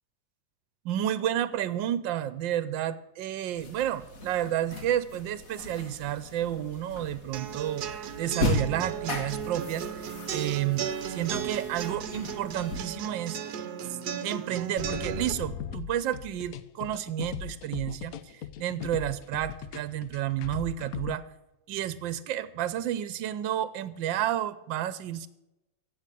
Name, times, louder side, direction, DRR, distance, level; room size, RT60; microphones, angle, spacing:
voice 1, 0.8-13.4 13.9-14.0 14.2-18.2 18.6-21.2 21.7-25.3, right 11 dB, 85° right, 15 dB, 1.4 m, -31 dB
sound 1, 3.6-12.8, left 2 dB, 50° left, 2.1 m, -37 dB
sound 2, 7.3-15.3, right 8 dB, 60° right, 1.4 m, -36 dB
sound 3, 14.8-21.2, left 9 dB, 65° left, 1.0 m, -38 dB
16.0 x 6.9 x 8.3 m, 0.92 s
omnidirectional pair, 2.0 m